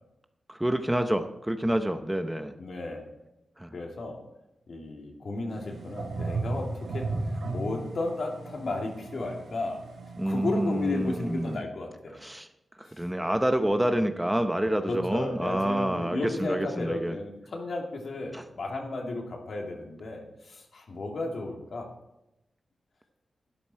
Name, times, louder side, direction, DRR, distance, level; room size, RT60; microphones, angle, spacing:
voice 1, 0.5-2.5 3.6-3.7 10.2-11.6 12.2-12.5 12.8-17.2 18.3-18.4, right 1 dB, 10° right, 8 dB, 0.7 m, -28 dB
voice 2, 2.6-3.0 3.7-4.2 4.7-9.8 10.2-12.2 12.9-13.0 14.7-21.9, left 2 dB, 60° left, 1 dB, 2.6 m, -34 dB
sound 1, 5.5-11.6, right 3 dB, 80° right, 1.9 m, -36 dB
12.0 x 11.0 x 4.4 m, 0.91 s
wide cardioid pair, 115°, 0 cm